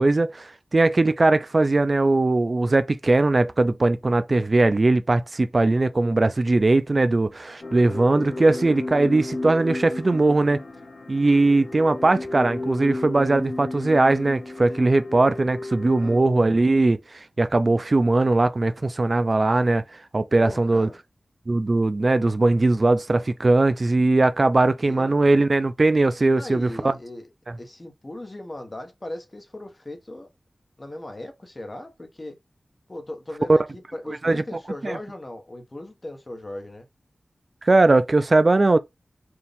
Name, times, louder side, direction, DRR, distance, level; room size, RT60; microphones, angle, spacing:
voice 1, 0.0-10.6 11.1-17.0 17.4-19.8 20.1-20.9 21.5-26.9 33.5-33.6 34.1-34.4 34.8-35.0 37.6-38.8, right 2 dB, 45° right, 0.4 m, -20 dB
sound 1, 7.6-16.2, left 2 dB, 75° left, 0.8 m, -34 dB
voice 2, 15.8-16.2 20.4-21.0 24.6-25.4 26.4-27.3 27.6-30.3 30.8-32.4 32.9-36.9, left 1 dB, 35° left, 1.2 m, -38 dB
4.5 x 2.5 x 3.4 m
wide cardioid pair, 80°, 0 cm